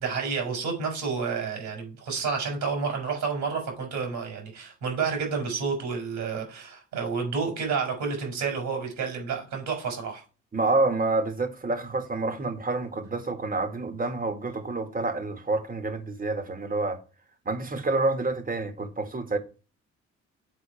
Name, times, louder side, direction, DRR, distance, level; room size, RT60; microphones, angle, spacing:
voice 1, 0.0-10.2, right 5 dB, 85° right, 4.3 m, -30 dB
voice 2, 10.5-17.0 17.5-19.4, right 3 dB, 30° right, 1.7 m, -28 dB
8.6 x 4.1 x 5.7 m
cardioid pair, 75°, 29 cm